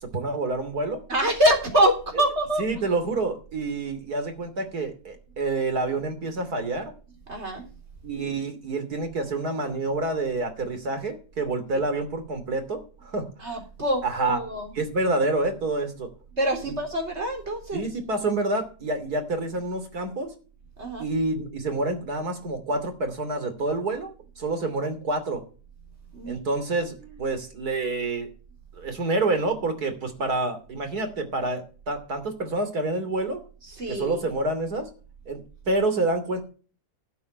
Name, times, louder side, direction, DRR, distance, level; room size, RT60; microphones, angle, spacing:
voice 1, 0.1-1.0 2.6-6.9 8.0-13.3 14.0-14.4 14.8-16.1 16.6-16.7 17.7-20.3 21.0-25.4 26.3-28.3 28.7-33.4 33.9-34.9 35.3-35.4 35.7-36.4, right 2 dB, 80° right, 8 dB, 3.4 m, -28 dB
voice 2, 1.1-2.9 7.3-7.7 11.7-11.8 13.4-14.7 16.3-17.8 20.8-21.1 26.1-26.4 33.7-34.4, right 1 dB, 45° right, 3 dB, 3.9 m, -25 dB
12.0 x 7.4 x 6.6 m, 0.37 s
omnidirectional pair, 1.6 m